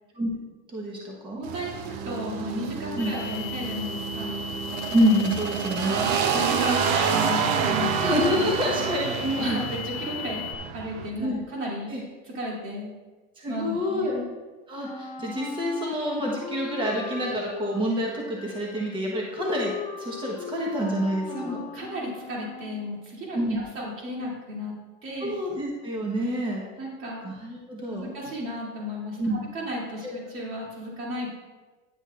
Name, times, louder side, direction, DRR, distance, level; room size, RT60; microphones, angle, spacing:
voice 1, 0.7-1.4 3.0-3.1 4.9-6.0 8.0-9.6 11.2-11.4 11.9-12.0 13.4-14.2 14.7-19.7 20.0-21.6 23.3-23.7 25.2-26.7 27.2-28.1 29.2-29.4 30.0-30.1, equal, 15° right, -2 dB, 1.2 m, -27 dB
voice 2, 1.4-4.4 5.9-8.0 8.4-8.6 9.3-10.4 10.7-11.9 12.2-12.9 13.5-14.2 21.3-24.7 25.0-25.3 26.8-27.2 27.9-31.3, equal, 35° right, -4 dB, 2.7 m, -34 dB
sound 1, 1.4-11.1, right 6 dB, 65° right, 0.9 m, -28 dB
sound 2, 3.0-10.5, left 5 dB, 80° left, 0.8 m, -37 dB
Wind instrument woodwind instrument, 14.8-22.9, left 6 dB, 15° left, 1.0 m, -38 dB
10.0 x 7.7 x 2.5 m, 1.3 s
supercardioid pair, 140°, 35 cm